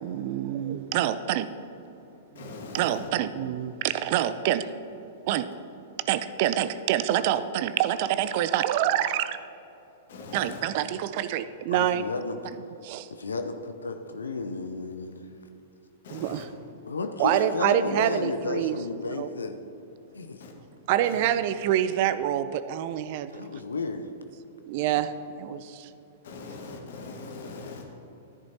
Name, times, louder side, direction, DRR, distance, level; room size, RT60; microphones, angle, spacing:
voice 1, 0.0-1.5 2.7-4.6 4.9-5.5 6.1-9.4 10.3-12.0 12.8-13.1 16.1-16.4 17.2-18.8 19.2-19.3 20.9-23.3 24.7-25.1 25.4-25.9, right 11 dB, 45° right, 13 dB, 0.4 m, -26 dB
voice 2, 2.4-3.0 10.1-10.6 16.0-16.4 20.4-20.5 21.0-21.2 26.2-27.8, left 3 dB, 60° left, 1 dB, 1.8 m, -41 dB
voice 3, 11.7-12.4 13.1-15.2 16.9-19.6 20.1-20.4 23.3-24.1, left 3 dB, 75° left, 7 dB, 0.6 m, -33 dB
13.5 x 10.5 x 2.9 m, 2.9 s
figure-of-eight pair, 100°, 0 cm